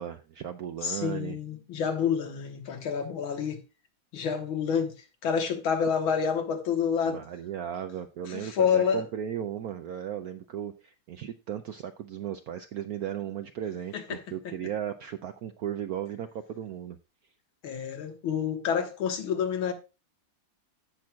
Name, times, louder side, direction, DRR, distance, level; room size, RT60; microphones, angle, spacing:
voice 1, 0.0-1.4 7.0-17.0, right 9 dB, 75° right, 0.8 m, -36 dB
voice 2, 0.8-3.6 4.1-4.9 5.2-7.2 8.3-9.0 13.9-14.2 14.5-14.6 17.6-19.7, left 7 dB, 85° left, 2.2 m, -28 dB
16.0 x 6.1 x 2.3 m
omnidirectional pair, 2.2 m